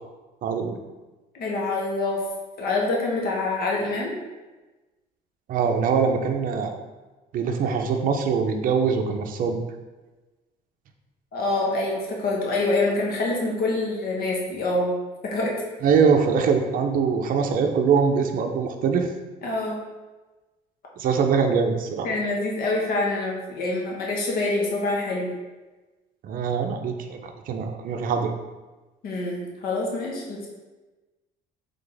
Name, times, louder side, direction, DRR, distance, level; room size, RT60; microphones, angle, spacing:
voice 1, 0.4-0.8 5.5-6.8 7.3-9.6 15.8-19.1 21.0-22.1 26.2-28.3, right 6 dB, 55° right, 4 dB, 0.5 m, -23 dB
voice 2, 1.3-2.2 2.6-4.1 11.3-15.0 15.2-15.5 19.4-19.8 22.0-25.3 29.0-30.5, left 2 dB, 60° left, -2 dB, 1.1 m, -26 dB
3.8 x 3.5 x 3.3 m, 1.2 s
cardioid pair, 110°, 17 cm